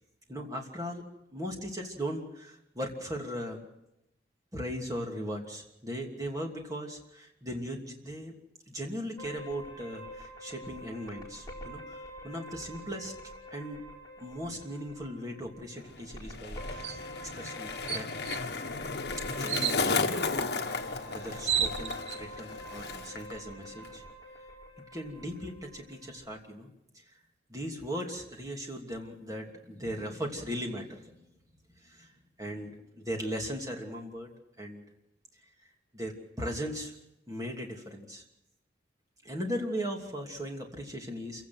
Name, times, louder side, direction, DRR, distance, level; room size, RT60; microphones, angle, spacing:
voice 1, 0.3-1.0 1.3-3.7 4.5-8.3 8.7-13.1 13.5-13.8 14.2-18.3 19.2-20.2 20.6-24.0 24.9-26.7 26.9-27.0 27.5-31.3 31.8-32.1 32.4-34.3 34.6-34.8 35.9-36.9 37.3-38.2 39.2-41.5, equal, 20° right, 1 dB, 2.8 m, -38 dB
sound 1, 9.2-26.3, equal, 20° left, 4.7 m, -46 dB
Skateboard, 15.8-23.3 23.6-24.1, left 4 dB, 60° left, 1.5 m, -34 dB
sound 2, 16.8-17.0 17.5-17.6 17.9-18.4 19.5-19.8 20.9-21.0 21.2-22.2, right 9 dB, 70° right, 0.8 m, -31 dB
27.5 x 16.5 x 6.1 m, 0.85 s
head